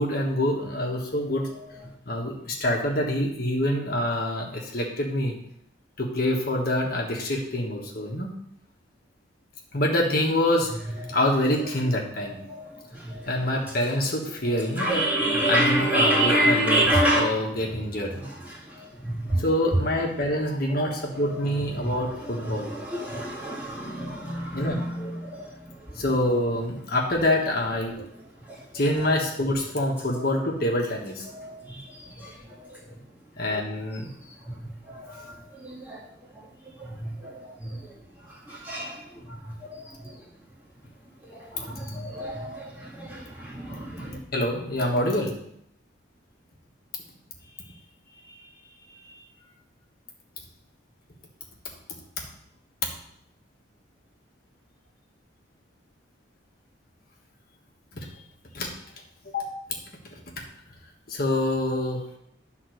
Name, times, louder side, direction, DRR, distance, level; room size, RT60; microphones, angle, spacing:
voice 1, 0.0-1.5 2.0-5.3 6.0-8.3 9.7-10.7 11.1-12.4 13.3-15.0 15.4-18.1 19.4-22.7 24.5-24.8 25.9-28.0 28.7-31.2 33.4-34.1 44.3-45.3 48.3-48.4 58.0-58.1 58.5-58.7 59.3-59.4 60.1-60.2 61.1-62.0, left 1 dB, 50° left, -1 dB, 1.5 m, -26 dB
voice 2, 12.3-12.8 13.1-13.2 13.9-14.0 14.8-17.3 18.8-19.4 21.8-25.5 31.3-31.8 32.2-32.3 34.9-35.2 35.6-36.0 36.8-37.3 37.7-37.8 38.5-39.0 39.7-39.8 41.3-44.2, right 1 dB, 10° right, -5 dB, 1.9 m, -27 dB
11.0 x 3.9 x 6.4 m, 0.73 s
head